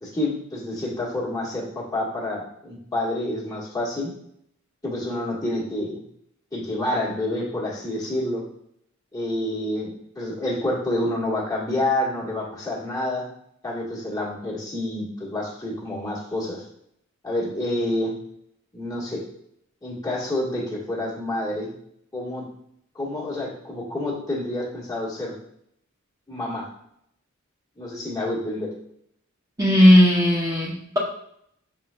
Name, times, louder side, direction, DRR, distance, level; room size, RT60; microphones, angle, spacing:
voice 1, 0.0-4.1 4.8-6.0 6.5-8.4 9.1-13.2 13.6-16.6 17.2-18.1 18.7-19.2 19.8-21.7 22.1-22.4 22.9-25.3 26.3-26.7 27.8-28.7, left 1 dB, 20° left, -6 dB, 1.3 m, -28 dB
voice 2, 29.6-31.0, left 1 dB, 15° right, -5 dB, 0.7 m, -16 dB
5.9 x 3.7 x 2.2 m, 0.72 s
head